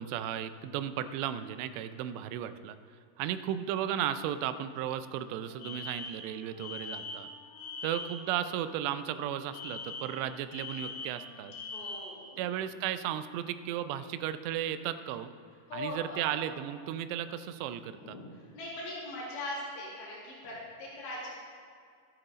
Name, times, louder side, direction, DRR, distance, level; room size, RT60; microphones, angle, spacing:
voice 1, 0.0-2.8 3.2-7.3 7.8-11.5 12.4-15.3 15.7-18.2, right 10 dB, 90° right, 12 dB, 2.8 m, -35 dB
Wind instrument woodwind instrument, 4.9-13.2, left 1 dB, 35° left, 1.1 m, -58 dB
Alarm, 5.6-8.3 9.5-12.3, left 3 dB, 65° left, 2.1 m, -42 dB
voice 2, 11.7-12.5 15.7-16.4 18.0-21.3, left 1 dB, 90° left, -8 dB, 4.8 m, -41 dB
13.0 x 10.0 x 3.9 m, 2.2 s
omnidirectional pair, 4.9 m